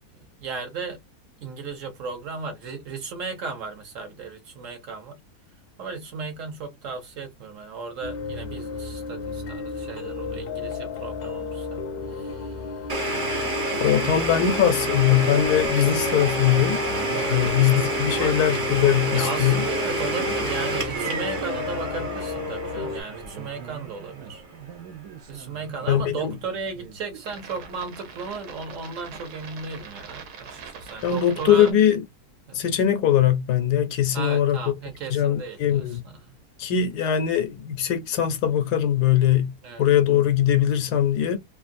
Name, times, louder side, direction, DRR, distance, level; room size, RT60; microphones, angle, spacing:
voice 1, 0.4-1.0 1.4-5.2 5.8-11.8 12.1-12.8 13.6-14.4 15.5-15.7 17.1-17.7 18.0-18.4 19.1-24.4 25.3-31.7 32.5-32.6 34.1-36.4 39.6-39.8, right 4 dB, 60° right, 1.1 m, -35 dB
sound 1, 8.0-23.0, left 5 dB, 60° left, 0.6 m, -33 dB
Domestic sounds home sounds, 12.9-24.5, right 1 dB, 40° right, 0.8 m, -28 dB
voice 2, 13.8-16.8 17.3-19.6 25.9-26.1 31.0-32.0 32.5-34.6 35.1-36.0 36.6-39.5 39.8-41.4, left 10 dB, 85° left, 1.2 m, -21 dB
sound 2, 14.7-31.7, right 6 dB, 80° right, 1.3 m, -43 dB
3.0 x 2.4 x 2.5 m
omnidirectional pair, 1.6 m